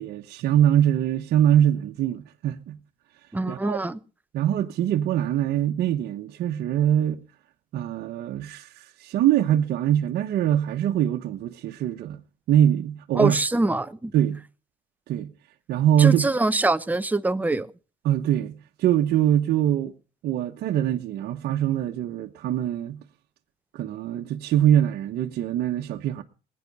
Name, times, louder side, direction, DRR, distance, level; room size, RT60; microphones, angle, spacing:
voice 1, 0.0-2.8 3.5-3.8 4.3-7.2 7.7-12.2 12.5-13.4 14.1-14.4 15.1-15.3 15.7-16.3 18.0-19.9 20.2-23.0 23.7-26.2, right 11 dB, 70° right, 1.2 m, -23 dB
voice 2, 3.3-4.0 13.2-14.1 16.0-17.7, right 2 dB, 10° right, 0.8 m, -24 dB
20.0 x 9.7 x 5.5 m
cardioid pair, 110°, 17 cm